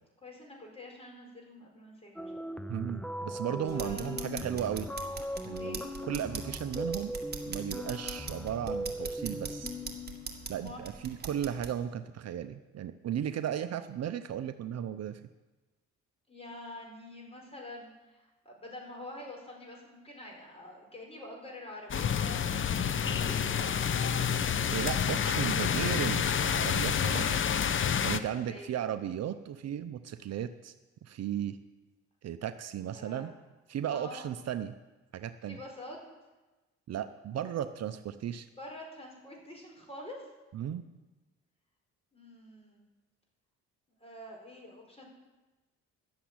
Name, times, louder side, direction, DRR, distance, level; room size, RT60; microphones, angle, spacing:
voice 1, 0.2-2.3 3.6-4.2 5.5-5.8 10.5-10.8 16.3-23.4 26.9-27.5 28.0-28.7 32.9-33.3 33.9-34.2 35.5-36.0 38.6-40.3 42.1-42.8 44.0-45.1, left 1 dB, 20° left, -1 dB, 4.8 m, -46 dB
sound 1, 2.2-10.6, equal, 5° left, 0.7 m, -39 dB
voice 2, 2.7-4.9 5.4-7.1 7.4-9.7 10.5-15.2 24.1-24.2 24.7-27.3 28.0-30.7 31.0-31.6 32.2-33.3 33.7-34.7 35.1-35.6 36.9-38.5 40.5-40.9, right 10 dB, 55° right, 10 dB, 0.7 m, -35 dB
sound 2, 3.7-11.7, right 5 dB, 35° right, 1.8 m, -42 dB
sound 3, 21.9-28.2, left 7 dB, 40° left, 0.7 m, -29 dB
11.5 x 7.9 x 8.7 m, 1.1 s
cardioid pair, 90°, 30 cm